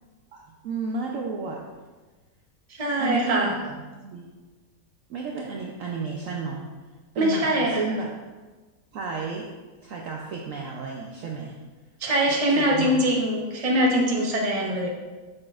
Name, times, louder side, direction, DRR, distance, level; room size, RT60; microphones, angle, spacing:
voice 1, 0.3-1.6 3.0-3.5 4.0-4.3 5.1-6.6 7.1-8.1 8.9-9.5 9.8-11.5 12.3-13.0, right 4 dB, 65° right, 0 dB, 0.9 m, -32 dB
voice 2, 2.7-3.6 7.2-7.8 12.0-14.9, equal, 25° right, -2 dB, 0.9 m, -23 dB
7.5 x 6.0 x 2.4 m, 1.3 s
omnidirectional pair, 1.8 m